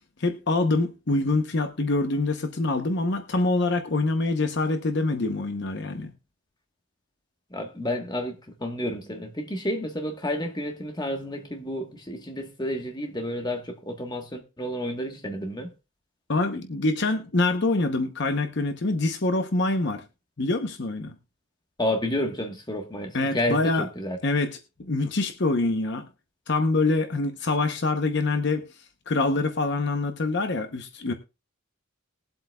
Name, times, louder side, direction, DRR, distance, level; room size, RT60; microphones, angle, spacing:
voice 1, 0.2-6.1 16.3-20.0 20.4-21.1 23.1-23.9 24.2-26.0 26.5-28.7 29.1-31.1, left 2 dB, 55° left, 0.9 m, -25 dB
voice 2, 7.5-15.7 21.8-24.2, left 1 dB, 20° left, 1.3 m, -30 dB
20.5 x 7.8 x 2.3 m
head